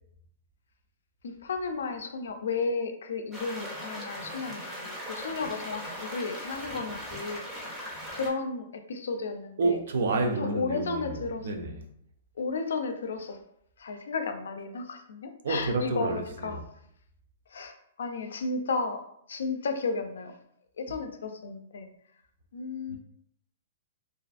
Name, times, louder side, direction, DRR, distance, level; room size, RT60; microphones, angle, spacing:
voice 1, 1.2-7.4 8.1-9.8 10.4-11.5 12.4-13.4 13.8-16.6 17.5-20.3 20.8-21.9 22.5-23.0, left 4 dB, 85° left, 0.4 m, -33 dB
sound 1, 3.3-8.3, equal, 5° right, 0.4 m, -39 dB
voice 2, 9.6-11.8 15.4-16.6 22.9-23.0, right 3 dB, 65° right, 0.4 m, -29 dB
2.5 x 2.4 x 2.4 m
hypercardioid pair, 175°, 0 cm